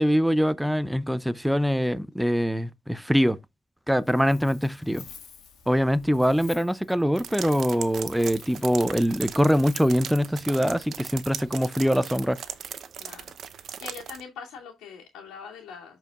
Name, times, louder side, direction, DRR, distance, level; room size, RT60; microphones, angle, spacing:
voice 1, 0.0-3.4 3.9-5.0 5.7-12.4, equal, ahead, 0.6 m, -23 dB
Wind, 3.9-10.4, left 7 dB, 75° left, 1.9 m, -50 dB
sound 1, 7.2-14.2, right 8 dB, 60° right, 0.7 m, -38 dB
voice 2, 13.0-16.0, left 6 dB, 90° left, 2.3 m, -43 dB
13.5 x 4.6 x 2.4 m
cardioid pair, 90°, 0 cm